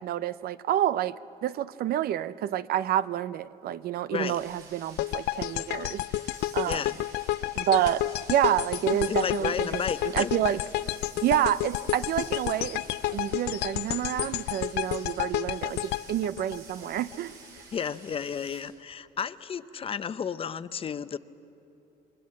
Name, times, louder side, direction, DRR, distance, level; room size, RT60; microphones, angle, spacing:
voice 1, 0.0-6.0 6.5-6.8 7.6-8.0 8.3-9.8 10.1-10.6 11.2-12.8 13.1-17.3, right 11 dB, 65° right, 15 dB, 0.6 m, -28 dB
sound 1, 4.3-18.6, right 4 dB, 90° right, 7.9 m, -50 dB
sound 2, 5.0-17.2, left 15 dB, 80° left, 0.5 m, -31 dB
voice 2, 6.7-7.0 9.1-10.3 17.7-21.2, left 7 dB, 35° left, 14 dB, 0.6 m, -32 dB
28.5 x 21.5 x 7.5 m, 2.8 s
cardioid pair, 110°, 17 cm